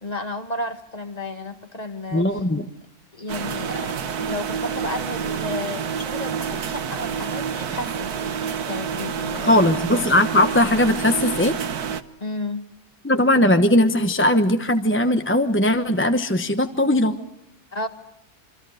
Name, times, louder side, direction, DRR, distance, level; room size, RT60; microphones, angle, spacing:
voice 1, 0.0-2.3 3.1-4.0 4.3-9.8 12.2-12.6 17.7-17.9, left 2 dB, 25° left, 8 dB, 1.8 m, -32 dB
voice 2, 2.1-2.7 9.4-11.6 13.0-17.2, left 1 dB, 10° left, 7 dB, 0.9 m, -19 dB
sound 1, 3.3-12.0, right 7 dB, 75° right, 1.7 m, -28 dB
28.0 x 25.0 x 6.5 m, 0.77 s
omnidirectional pair, 1.6 m